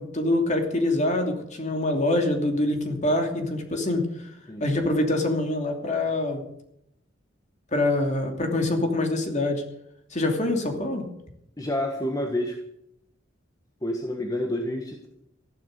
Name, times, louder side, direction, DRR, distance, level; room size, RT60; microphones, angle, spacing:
voice 1, 0.0-4.1 4.6-6.5 7.7-9.6 10.1-11.1, left 2 dB, 40° left, 3 dB, 2.8 m, -25 dB
voice 2, 11.6-12.6 13.8-15.1, left 1 dB, 20° left, 3 dB, 1.5 m, -28 dB
14.5 x 12.0 x 6.7 m, 0.77 s
head